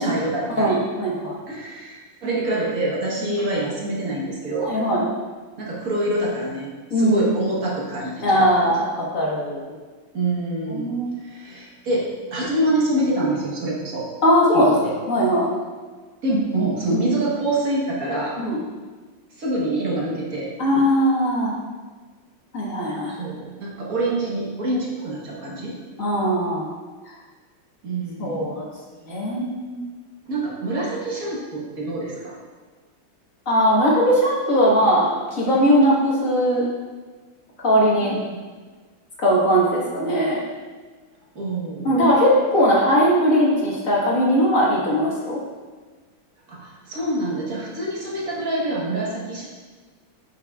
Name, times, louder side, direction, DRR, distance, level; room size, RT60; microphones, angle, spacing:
voice 1, 0.0-0.8 1.5-4.7 5.6-8.6 10.1-14.1 14.5-14.9 16.2-18.4 19.4-20.5 23.1-25.8 27.8-28.6 30.3-32.4 38.0-38.4 41.3-42.1 46.5-49.4, right 1 dB, 50° right, -4 dB, 1.4 m, -26 dB
voice 2, 0.6-1.4 4.6-5.1 6.9-7.2 8.2-8.9 9.1-9.6 10.7-11.1 14.2-14.7 15.1-15.5 16.9-17.0 18.4-18.6 20.6-21.5 22.5-23.1 26.0-26.7 28.2-28.6 29.1-29.8 33.5-36.6 37.6-38.2 39.2-40.4 41.8-45.4, equal, 40° left, -5 dB, 1.6 m, -19 dB
8.7 x 6.2 x 2.3 m, 1.4 s
omnidirectional pair, 2.4 m